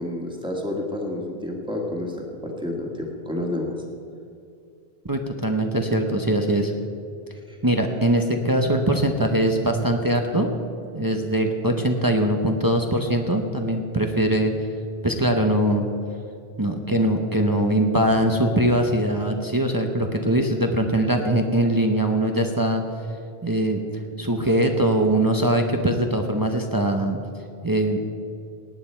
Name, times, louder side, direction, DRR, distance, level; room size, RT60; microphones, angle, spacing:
voice 1, 0.0-3.7 7.5-7.6, left 1 dB, 5° right, 0 dB, 1.8 m, -30 dB
voice 2, 5.1-6.7 7.6-10.5 10.9-14.5 15.0-15.9 16.6-22.8 23.4-23.8 24.2-27.2 27.6-28.0, right 1 dB, 20° right, 3 dB, 0.8 m, -22 dB
18.0 x 9.3 x 4.5 m, 2.5 s
omnidirectional pair, 1.1 m